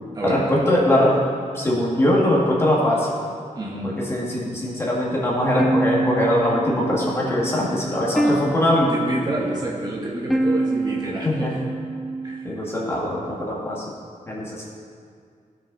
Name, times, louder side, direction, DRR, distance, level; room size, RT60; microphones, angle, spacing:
voice 1, 0.2-1.2 1.5-3.1 3.8-8.9 11.2-11.5 12.4-13.9 14.3-14.7, left 1 dB, 20° left, -5 dB, 2.1 m, -21 dB
voice 2, 3.5-3.9 8.2-8.5 8.9-11.5 12.2-12.7, right 1 dB, 30° right, -4 dB, 1.5 m, -29 dB
sound 1, 5.6-12.7, right 2 dB, ahead, 0.4 m, -26 dB
17.0 x 6.5 x 4.1 m, 2.2 s
wide cardioid pair, 160°, 13 cm